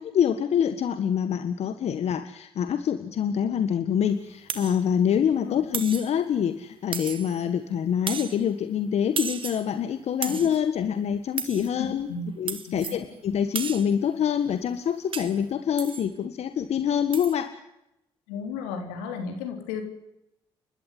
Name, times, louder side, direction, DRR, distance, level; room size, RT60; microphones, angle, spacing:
voice 1, 0.0-12.1 12.4-17.5, left 8 dB, 60° left, 10 dB, 1.6 m, -26 dB
sound 1, 4.5-4.8 5.7-6.2 6.9-7.4 8.1-8.4 9.2-9.7 10.2-10.6 11.4-11.7 12.5-13.0 13.5-13.9 15.1-15.4 15.8-16.1 17.1-17.3, right 6 dB, 45° right, 2.2 m, -34 dB
voice 2, 11.7-12.3 12.6-13.1 18.3-19.8, left 5 dB, 85° left, 5 dB, 4.0 m, -34 dB
30.0 x 12.5 x 9.5 m, 0.86 s
hypercardioid pair, 50°, 12 cm